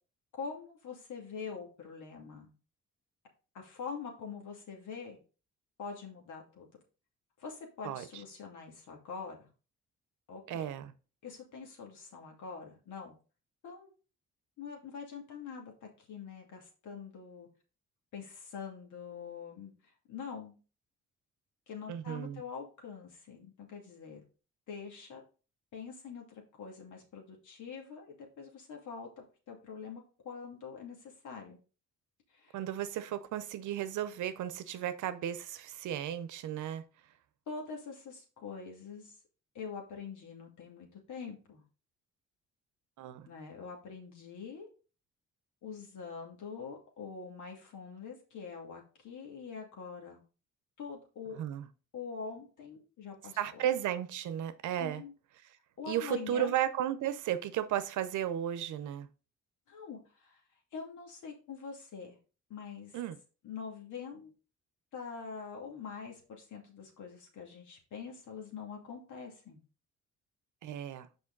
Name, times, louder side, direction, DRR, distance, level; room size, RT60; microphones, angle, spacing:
voice 1, 0.3-2.5 3.5-5.2 5.8-6.7 7.4-9.5 10.3-10.7 11.2-13.1 13.6-13.9 14.6-17.5 18.1-19.7 20.1-20.5 21.7-24.2 24.7-25.2 25.7-31.6 32.3-32.6 37.5-39.1 39.5-41.6 43.2-44.7 45.6-50.2 50.8-51.4 51.9-53.6 54.8-55.1 55.8-56.5 59.7-60.4 60.7-62.2 62.5-63.0 63.4-64.3 64.9-69.6, left 5 dB, 75° left, 2.4 m, -44 dB
voice 2, 10.5-10.9 21.9-22.4 32.5-36.8 43.0-43.3 51.4-51.7 53.4-55.0 55.9-59.1 62.9-63.2 70.6-71.1, right 10 dB, 75° right, 0.8 m, -34 dB
6.3 x 5.1 x 3.9 m
cardioid pair, 90°, 30 cm